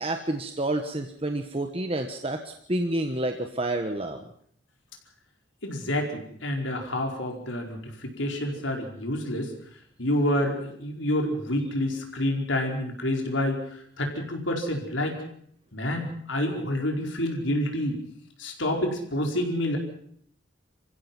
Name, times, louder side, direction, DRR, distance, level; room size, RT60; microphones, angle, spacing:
voice 1, 0.0-4.2, right 1 dB, 30° right, 5 dB, 1.3 m, -29 dB
voice 2, 5.6-9.5 10.0-15.2 15.7-18.0 18.4-19.8, left 1 dB, 85° left, 2 dB, 4.8 m, -28 dB
28.0 x 15.5 x 6.1 m, 0.63 s
head